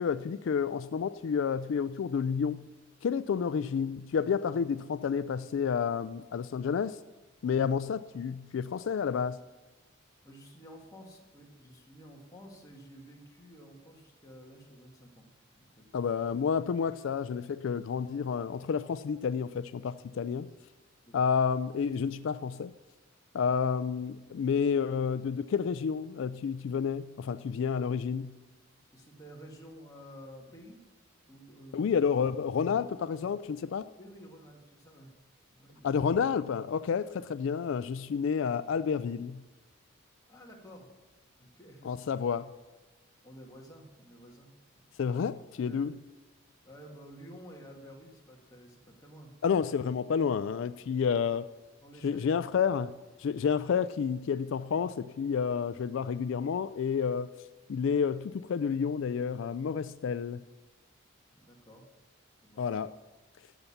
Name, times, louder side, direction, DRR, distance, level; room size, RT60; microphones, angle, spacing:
voice 1, 0.0-2.7 3.0-7.0 7.4-9.4 15.9-20.5 21.1-22.7 23.3-28.4 31.7-33.9 35.8-39.4 41.8-42.5 45.0-45.9 49.4-51.5 52.0-52.9 53.2-57.3 57.7-60.4 62.6-62.9, left 6 dB, 60° left, 14 dB, 0.3 m, -30 dB
voice 2, 10.2-15.3 15.6-15.8 21.1-21.3 28.9-30.8 31.2-31.9 34.0-35.1 35.5-36.0 40.3-40.9 41.4-41.9 43.2-44.5 44.8-44.9 45.7-45.9 46.6-49.3 51.8-52.6 61.3-61.9 62.4-62.7, equal, 15° left, -1 dB, 1.8 m, -51 dB
13.5 x 7.0 x 7.1 m, 1.1 s
head